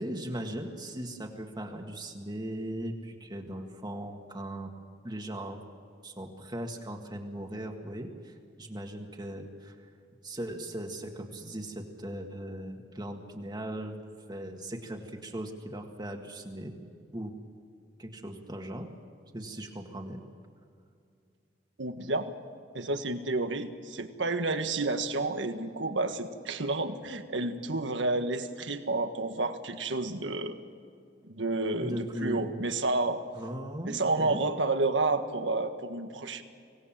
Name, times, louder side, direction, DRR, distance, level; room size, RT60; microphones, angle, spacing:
voice 1, 0.0-4.7 5.0-5.6 6.0-9.8 10.2-13.9 14.3-16.8 17.1-17.3 18.0-18.9 19.3-20.2 31.8-32.4 33.3-34.4, right 1 dB, 25° right, 2 dB, 1.9 m, -38 dB
voice 2, 21.8-22.3 22.7-30.6 31.3-33.2 33.8-36.4, right 2 dB, 80° right, 7 dB, 1.6 m, -30 dB
25.5 x 18.5 x 7.6 m, 2.4 s
head